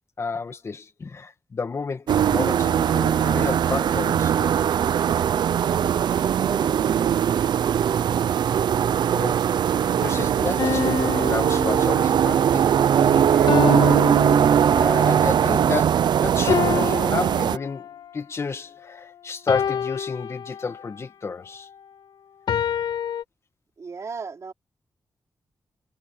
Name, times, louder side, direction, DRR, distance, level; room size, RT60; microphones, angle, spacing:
voice 1, 0.2-4.6 9.1-9.5 9.8-14.0 14.7-21.7, left 4 dB, 35° left, 1.9 m, -31 dB
sound 1, 2.1-17.6, right 9 dB, 80° right, 0.6 m, -20 dB
voice 2, 6.3-7.2 23.8-24.5, right 5 dB, 45° right, 3.0 m, -35 dB
sound 2, 10.6-12.4 13.5-15.1 16.5-18.1 19.5-21.0 22.5-23.2, left 8 dB, 75° left, 0.6 m, -28 dB
wide cardioid pair, 145°, 7 cm